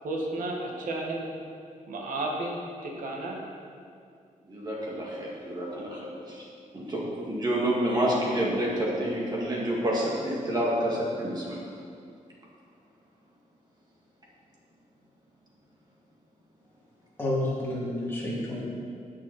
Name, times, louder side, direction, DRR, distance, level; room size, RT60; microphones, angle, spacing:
voice 1, 0.0-1.3 1.9-3.4, right 2 dB, 80° right, -1 dB, 1.6 m, -32 dB
voice 2, 4.5-6.5 6.7-11.6, right 1 dB, 30° right, -4 dB, 2.2 m, -28 dB
voice 3, 17.2-18.6, left 1 dB, 15° left, -6 dB, 2.3 m, -29 dB
16.5 x 6.4 x 4.3 m, 2.3 s
wide cardioid pair, 180°, 14 cm